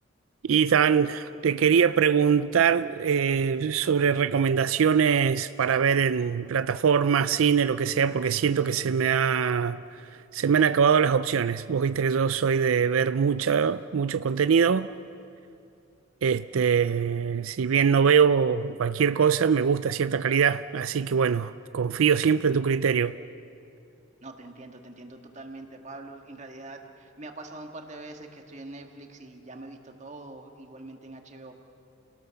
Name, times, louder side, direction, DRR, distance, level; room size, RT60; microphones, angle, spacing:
voice 1, 0.4-9.8 10.3-14.9 16.2-23.1, right 7 dB, 90° right, 0.4 m, -23 dB
voice 2, 24.2-31.5, right 2 dB, 35° right, 1.8 m, -43 dB
30.0 x 18.0 x 7.1 m
head